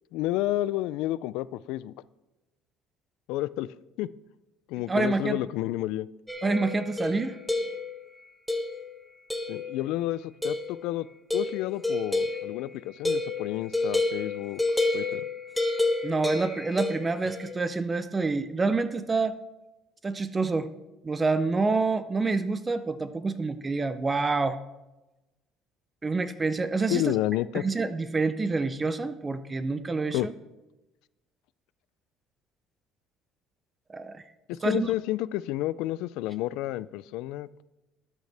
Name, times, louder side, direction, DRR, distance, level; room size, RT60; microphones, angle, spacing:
voice 1, 0.1-1.9 3.3-3.7 4.0-4.1 4.7-6.1 9.5-11.1 11.3-14.6 14.9-15.2 26.9-27.6 30.1-30.3 34.5-37.6, left 15 dB, 80° left, 0.3 m, -30 dB
voice 2, 4.9-5.4 6.4-7.4 16.0-19.4 20.0-20.7 21.0-24.6 26.0-27.0 27.5-30.2 33.9-34.2 34.6-34.9, right 3 dB, 20° right, 0.5 m, -27 dB
sound 1, 6.3-8.0 8.5-8.9 9.3-9.9 10.4-10.8 11.3-17.5, left 2 dB, ahead, 1.1 m, -30 dB
13.0 x 9.1 x 3.4 m
cardioid pair, 125°, 0 cm